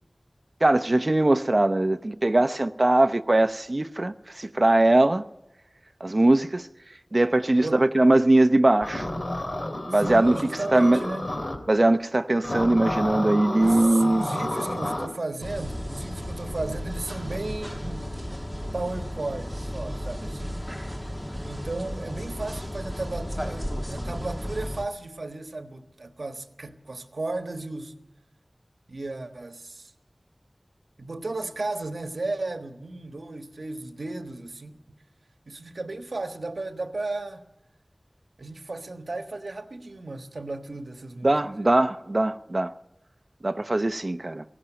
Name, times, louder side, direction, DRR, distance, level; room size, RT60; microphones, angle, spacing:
voice 1, 0.6-5.2 6.0-6.7 7.1-9.1 9.9-10.4 10.7-11.0 11.7-14.2 41.2-42.7 43.4-44.4, right 2 dB, 45° right, 0.8 m, -21 dB
voice 2, 7.5-7.9 10.0-11.3 13.5-18.1 18.7-20.6 21.4-27.9 28.9-29.9 31.0-35.0 35.5-37.5 38.4-41.6, right 2 dB, 85° right, 1.4 m, -34 dB
sound 1, 8.8-11.6 12.4-15.1, left 1 dB, 55° left, 3.2 m, -30 dB
sound 2, 15.4-24.9, equal, 5° left, 1.4 m, -34 dB
17.0 x 17.0 x 9.0 m
wide cardioid pair, 55°, 0 cm